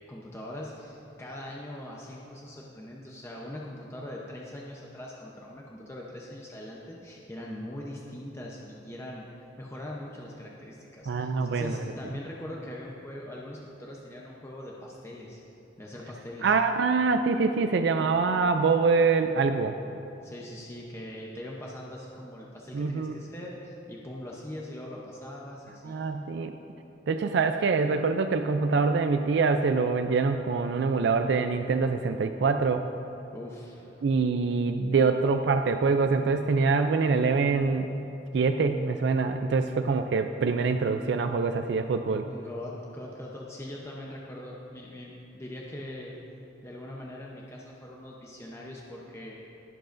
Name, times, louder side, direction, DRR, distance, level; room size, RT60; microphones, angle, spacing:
voice 1, 0.1-15.4 15.8-16.5 20.2-26.0 33.3-34.0 42.3-46.1 46.6-49.4, left 1 dB, 15° left, -3 dB, 0.8 m, -41 dB
voice 2, 11.1-11.8 16.4-19.8 22.7-23.2 25.8-26.6 27.1-32.8 34.0-37.9 38.3-42.3, right 4 dB, 65° right, 7 dB, 0.4 m, -25 dB
22.0 x 7.7 x 2.6 m, 2.9 s
head